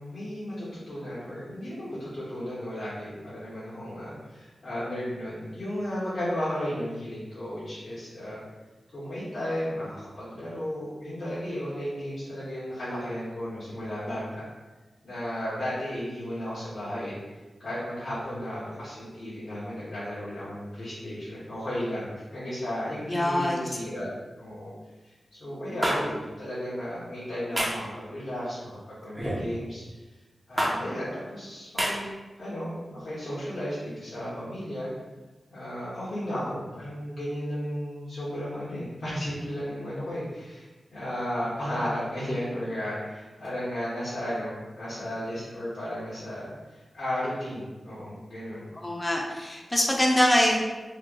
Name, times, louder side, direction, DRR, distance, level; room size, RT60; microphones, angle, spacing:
voice 1, 0.0-8.4 8.9-14.4 15.0-17.1 17.6-24.1 24.4-24.7 25.0-25.1 25.4-29.8 30.5-32.0 32.4-34.9 35.5-40.6 40.9-48.7, equal, 65° left, -11 dB, 1.2 m, -34 dB
voice 2, 23.1-23.6 48.8-50.6, left 1 dB, 25° left, -1 dB, 0.8 m, -23 dB
sound 1, 25.8-26.0 27.6-27.8 29.2-29.5 30.6-30.7 31.8-31.9, right 1 dB, 25° right, 0.9 m, -26 dB
3.2 x 2.6 x 3.8 m, 1.2 s
cardioid pair, 55°, 0 cm